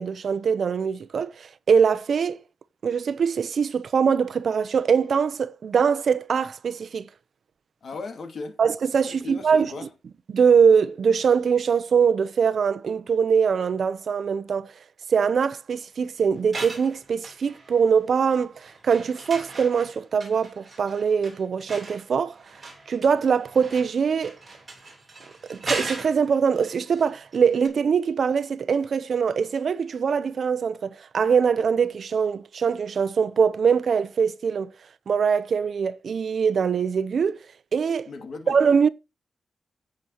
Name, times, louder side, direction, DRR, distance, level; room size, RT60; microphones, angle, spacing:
voice 1, 0.0-2.4 2.8-7.1 8.6-9.7 10.3-14.7 15.1-22.3 22.9-24.3 25.5-34.7 35.1-37.4 37.7-38.1 38.5-38.9, right 6 dB, 60° right, 0.9 m, -22 dB
voice 2, 7.8-8.6 9.0-9.9 38.1-38.6, left 3 dB, 60° left, 2.4 m, -37 dB
sound 1, 16.3-18.0 18.3-27.4 27.6-27.7, right 3 dB, 25° right, 7.9 m, -38 dB
16.5 x 8.0 x 3.1 m
wide cardioid pair, 155°, 0 cm